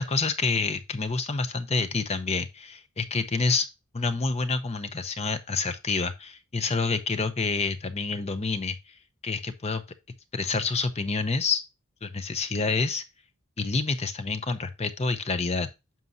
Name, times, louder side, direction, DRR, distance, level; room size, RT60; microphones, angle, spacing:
voice 1, 0.0-3.7 3.9-8.9 9.2-9.8 10.3-11.6 12.0-13.0 13.6-15.7, left 4 dB, 30° left, 0.7 m, -28 dB
9.4 x 6.1 x 2.6 m
head